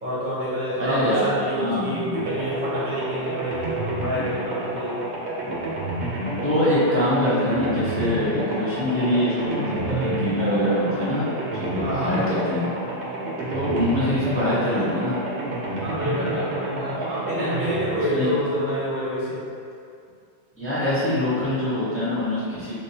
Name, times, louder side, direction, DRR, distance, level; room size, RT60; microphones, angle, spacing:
voice 1, 0.0-5.1 7.9-8.4 8.9-9.3 11.8-12.3 15.8-19.4, equal, 45° right, -9 dB, 1.0 m, -28 dB
voice 2, 0.8-2.1 5.4-5.5 6.4-11.2 11.5-12.6 13.5-15.1 15.4-15.5 16.9-17.4 18.1-18.3 20.6-22.7, left 1 dB, 15° left, -12 dB, 0.7 m, -24 dB
sound 1, 2.1-19.1, right 1 dB, 70° right, 0.9 m, -30 dB
3.4 x 2.7 x 2.8 m, 2.4 s
omnidirectional pair, 1.2 m